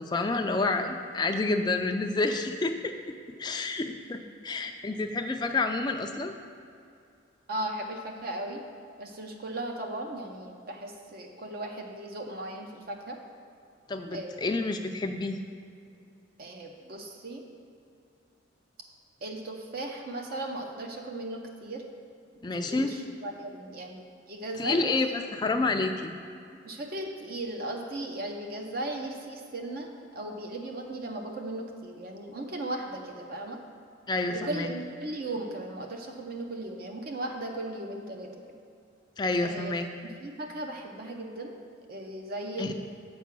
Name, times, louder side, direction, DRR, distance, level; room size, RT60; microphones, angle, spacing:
voice 1, 0.0-3.0 3.4-6.4 13.9-15.4 22.4-22.9 24.6-26.1 34.1-34.7 39.2-39.9 42.6-42.7, left 3 dB, 20° left, 5 dB, 0.4 m, -29 dB
voice 2, 7.5-8.6 9.0-13.2 14.1-14.5 16.4-17.4 19.2-21.8 22.6-24.0 24.3-24.9 26.6-33.6 34.3-38.4 39.4-39.8 40.2-41.6 41.9-42.7, right 1 dB, 50° right, 2 dB, 0.6 m, -37 dB
7.1 x 4.7 x 6.0 m, 2.5 s
head